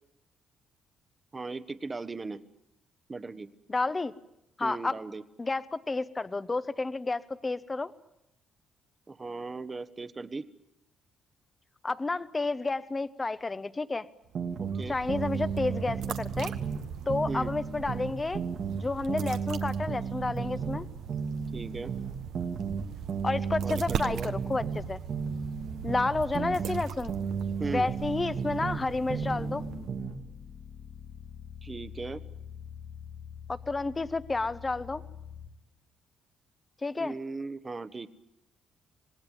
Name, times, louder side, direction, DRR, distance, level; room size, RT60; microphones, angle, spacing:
voice 1, 1.3-2.4 3.1-3.5 4.6-5.2 9.1-10.5 14.6-15.0 17.3-17.5 21.5-21.9 23.6-24.3 27.6-27.9 31.6-32.2 37.0-38.1, right 3 dB, 25° right, 12 dB, 1.2 m, -37 dB
voice 2, 3.7-4.1 4.6-4.9 5.4-7.9 11.8-14.1 14.9-16.5 17.1-18.4 18.8-20.9 23.2-25.0 25.8-27.1 27.6-29.6 33.5-35.0 36.8-37.2, left 3 dB, 25° left, 14 dB, 1.0 m, -30 dB
sound 1, 14.3-16.8 17.1-20.8 21.1-24.8 25.1-28.8 29.1-30.2, right 6 dB, 60° right, 2.2 m, -34 dB
sound 2, 14.3-30.2, right 8 dB, 80° right, 1.3 m, -40 dB
sound 3, 29.2-35.5, left 7 dB, 55° left, 3.4 m, -45 dB
26.5 x 19.0 x 9.2 m, 0.81 s
cardioid pair, 90°, 0 cm